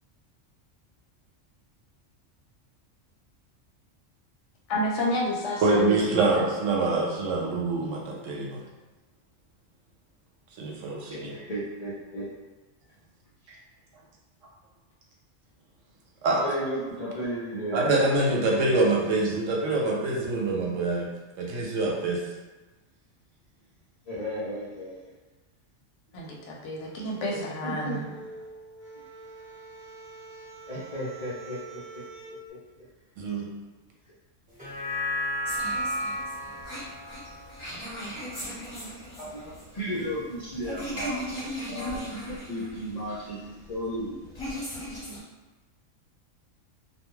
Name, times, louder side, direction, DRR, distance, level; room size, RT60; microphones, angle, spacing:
voice 1, 4.7-6.4 26.1-28.0, equal, 70° left, -2 dB, 0.8 m, -30 dB
voice 2, 5.6-8.6 10.6-11.3 16.2-16.4 17.7-21.1 21.4-22.2 33.2-33.5, right 2 dB, 80° right, -2 dB, 1.0 m, -25 dB
voice 3, 11.1-12.3 16.4-18.0 24.1-25.1 27.3-28.0 30.7-32.0 32.5-32.6 39.2-41.3 41.6-44.1, equal, 50° left, -9 dB, 0.5 m, -34 dB
sound 1, 26.2-32.4, right 3 dB, 40° right, 0.8 m, -46 dB
sound 2, 34.5-39.1 39.5-39.6, left 1 dB, 5° right, 0.9 m, -34 dB
sound 3, 35.4-45.2, equal, 25° left, 1.1 m, -38 dB
2.3 x 2.2 x 3.0 m, 1.2 s
omnidirectional pair, 1.3 m